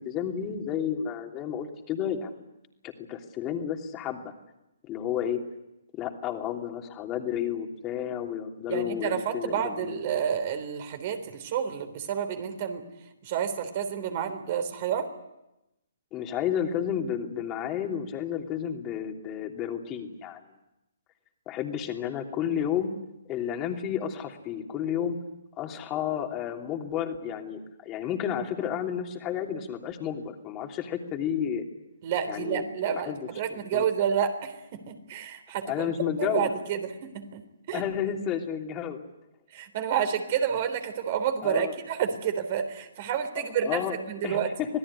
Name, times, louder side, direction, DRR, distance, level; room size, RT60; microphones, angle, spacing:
voice 1, 0.0-2.3 2.8-4.3 4.8-5.4 5.9-10.0 16.1-20.4 21.5-22.9 23.2-25.2 25.6-31.7 32.3-32.6 32.9-33.2 33.5-33.9 35.7-36.5 37.7-39.0 41.4-41.8 43.4-44.7, left 9 dB, 25° left, 3 dB, 3.0 m, -31 dB
voice 2, 8.7-12.8 13.2-15.1 32.0-35.9 36.2-37.4 37.7-37.8 39.5-43.8 44.1-44.5, right 8 dB, 45° right, 8 dB, 3.7 m, -29 dB
26.0 x 17.5 x 9.9 m, 0.93 s
hypercardioid pair, 140°, 0 cm